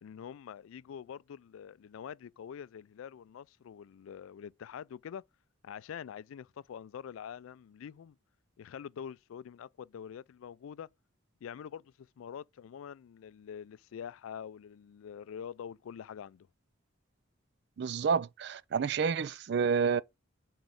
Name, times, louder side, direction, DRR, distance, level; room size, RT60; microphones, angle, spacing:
voice 1, 0.0-5.2 5.6-8.2 8.6-10.9 11.4-16.5, left 8 dB, 85° left, 0.3 m, -45 dB
voice 2, 17.8-20.0, right 6 dB, 55° right, 0.4 m, -29 dB
6.2 x 4.3 x 5.1 m
head